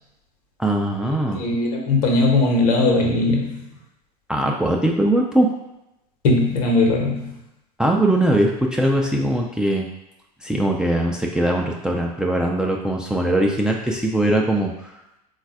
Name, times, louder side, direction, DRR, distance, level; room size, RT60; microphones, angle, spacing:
voice 1, 0.6-1.4 4.3-5.5 7.8-9.9 10.4-14.9, right 1 dB, 5° right, 0 dB, 0.4 m, -21 dB
voice 2, 1.3-3.6 6.2-7.3, left 2 dB, 65° left, 0 dB, 1.1 m, -19 dB
3.9 x 2.4 x 4.6 m, 0.89 s
figure-of-eight pair, 75°, 21 cm